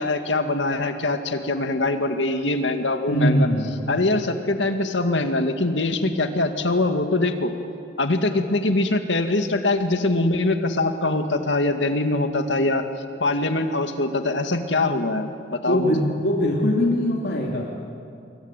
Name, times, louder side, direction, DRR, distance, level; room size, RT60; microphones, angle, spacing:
voice 1, 0.0-3.5 3.9-7.5 8.0-12.8 13.2-16.0, left 2 dB, 90° left, 7 dB, 2.1 m, -23 dB
voice 2, 3.1-3.7 15.7-17.6, equal, 65° left, -1 dB, 2.8 m, -21 dB
27.0 x 23.5 x 9.1 m, 2.6 s
head